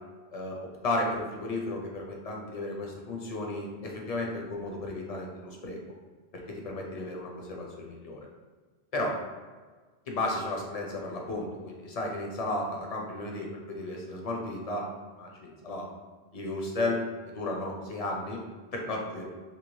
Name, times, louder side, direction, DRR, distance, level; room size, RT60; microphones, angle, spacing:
voice 1, 0.8-5.8 6.3-8.3 8.9-9.2 10.1-14.9 15.1-15.9 16.3-18.4 18.7-19.2, left 2 dB, 45° left, 0 dB, 0.5 m, -34 dB
2.7 x 2.7 x 3.0 m, 1.4 s
omnidirectional pair, 1.1 m